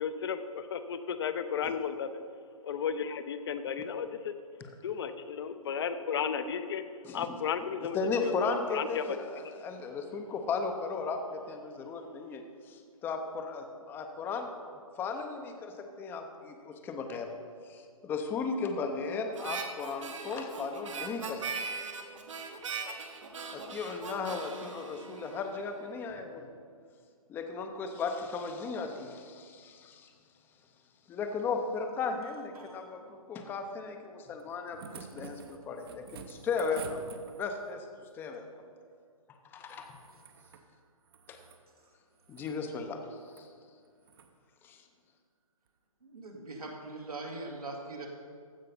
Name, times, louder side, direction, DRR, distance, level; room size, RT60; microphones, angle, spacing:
voice 1, 0.0-2.1 2.6-4.3 4.8-6.8 7.1-8.3 8.7-9.0, left 7 dB, 45° left, 10 dB, 0.7 m, -34 dB
voice 2, 7.0-7.4 7.9-14.5 15.0-17.3 17.6-21.5 23.5-26.5 27.3-30.1 31.1-37.0 37.4-37.9 38.1-38.5 39.4-40.0 41.3-41.4 42.3-43.0 43.4-43.5 44.6-44.8, left 4 dB, 10° left, 5 dB, 0.6 m, -36 dB
Harmonica, 19.3-25.8, right 5 dB, 60° right, 1.3 m, -40 dB
sound 1, 34.4-37.7 39.6-40.7 41.0-41.6 42.2-42.6 43.2-43.5 44.0-44.3 45.7-45.8, right 6 dB, 40° right, 0.9 m, -49 dB
voice 3, 46.0-48.1, right 2 dB, 85° right, -1 dB, 2.1 m, -42 dB
15.0 x 5.6 x 5.3 m, 2.1 s
figure-of-eight pair, 135°, 19 cm